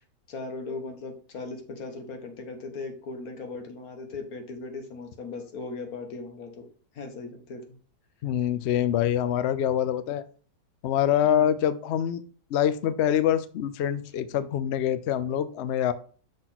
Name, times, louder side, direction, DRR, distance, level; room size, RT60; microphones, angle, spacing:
voice 1, 0.3-6.7 7.0-7.8 11.2-11.5, left 3 dB, 60° left, 5 dB, 1.7 m, -38 dB
voice 2, 8.2-10.2 10.8-12.2 12.5-15.9, left 10 dB, 90° left, 14 dB, 0.5 m, -25 dB
6.4 x 4.1 x 5.9 m, 0.42 s
omnidirectional pair, 1.8 m